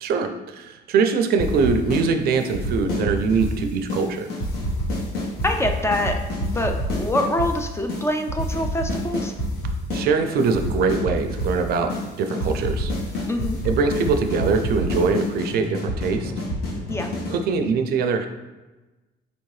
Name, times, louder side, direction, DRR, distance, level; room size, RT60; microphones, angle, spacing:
voice 1, 0.0-4.3 9.9-11.9 12.2-12.9 13.7-16.3 17.3-18.3, right 5 dB, 65° right, 6 dB, 0.4 m, -22 dB
sound 1, 1.4-2.0 2.3-3.6 3.9-4.0 4.3-7.5 7.9-8.0 8.3-10.0 10.3-11.6 11.9-12.0 12.3-17.4, equal, 65° left, 1.1 m, -27 dB
voice 2, 5.4-6.2 6.4-9.3 13.3-13.6 16.9-17.1, left 1 dB, 15° left, 4 dB, 0.3 m, -25 dB
4.2 x 2.7 x 3.1 m, 1.1 s
cardioid pair, 110°, 17 cm